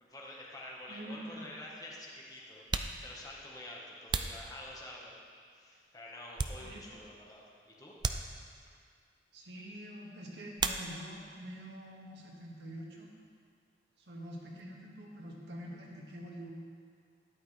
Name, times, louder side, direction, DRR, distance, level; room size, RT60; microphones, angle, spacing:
voice 1, 0.0-2.7 3.0-5.2 5.5-7.9, left 1 dB, 20° left, -3 dB, 1.4 m, -48 dB
sound 1, 0.8-0.9 1.8-1.9 2.5-5.2 5.7-7.1 7.4-7.5 8.0-8.8 10.5-11.3 11.6-12.3 12.6-14.7, right 4 dB, 25° right, 0.4 m, -39 dB
voice 2, 0.9-1.4 6.6-6.8 9.3-13.1 14.0-16.5, equal, 80° right, -2 dB, 1.9 m, -46 dB
13.0 x 11.0 x 3.4 m, 2.1 s
head